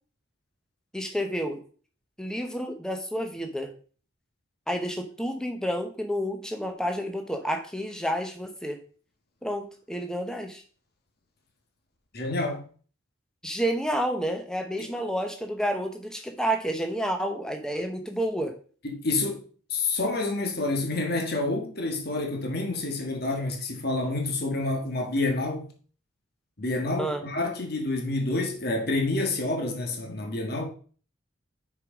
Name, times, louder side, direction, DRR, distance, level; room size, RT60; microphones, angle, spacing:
voice 1, 0.9-1.6 2.2-3.7 4.7-8.8 9.4-10.6 13.4-18.6 27.0-27.2, equal, 5° left, 0.8 m, -30 dB
voice 2, 12.1-12.7 14.8-14.9 18.8-19.4 19.7-25.7 26.6-30.7, left 2 dB, 50° left, 1.6 m, -28 dB
6.6 x 4.8 x 5.0 m
head